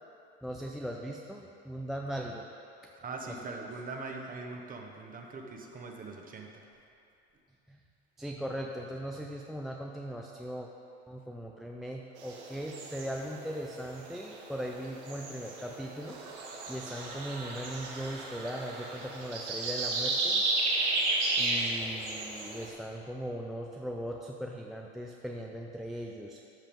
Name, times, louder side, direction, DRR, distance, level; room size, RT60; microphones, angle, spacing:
voice 1, 0.4-2.5 3.3-3.4 7.7-7.8 8.2-10.7 11.1-16.2 16.7-20.4 21.4-26.4, equal, ahead, -1 dB, 0.4 m, -39 dB
voice 2, 2.9-6.6, right 3 dB, 25° right, 2 dB, 1.1 m, -42 dB
sound 1, 12.2-22.7, right 2 dB, 75° right, 1.6 m, -34 dB
sound 2, 16.1-20.1, right 3 dB, 55° right, 1.5 m, -47 dB
12.5 x 5.5 x 3.6 m, 2.6 s
hypercardioid pair, 90°, 34 cm